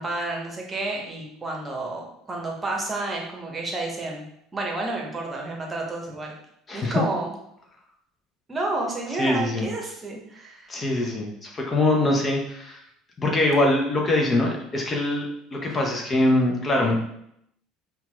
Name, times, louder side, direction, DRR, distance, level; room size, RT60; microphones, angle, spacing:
voice 1, 0.0-4.3 4.5-6.3 6.7-7.3 8.5-10.8 15.7-15.8, right 2 dB, 20° right, -1 dB, 0.9 m, -30 dB
voice 2, 6.7-7.0 9.2-9.7 10.7-12.8 13.2-16.9, left 2 dB, 30° left, 1 dB, 0.6 m, -23 dB
5.6 x 2.3 x 2.3 m, 0.74 s
figure-of-eight pair, 65°, 0 cm